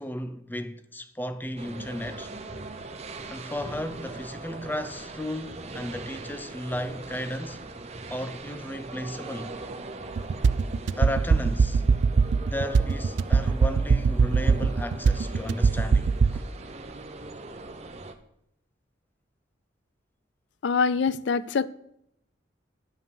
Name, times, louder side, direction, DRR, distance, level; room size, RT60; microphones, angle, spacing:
voice 1, 0.0-2.3 3.3-7.6 8.1-9.6 10.9-11.8 12.4-16.4, left 1 dB, 10° left, 0.5 m, -34 dB
sound 1, 1.6-18.1, right 2 dB, 35° right, 0.8 m, -41 dB
sound 2, 10.2-16.4, right 5 dB, 80° right, 0.4 m, -22 dB
voice 2, 20.6-21.7, left 5 dB, 70° left, 0.4 m, -24 dB
11.0 x 5.6 x 6.9 m
head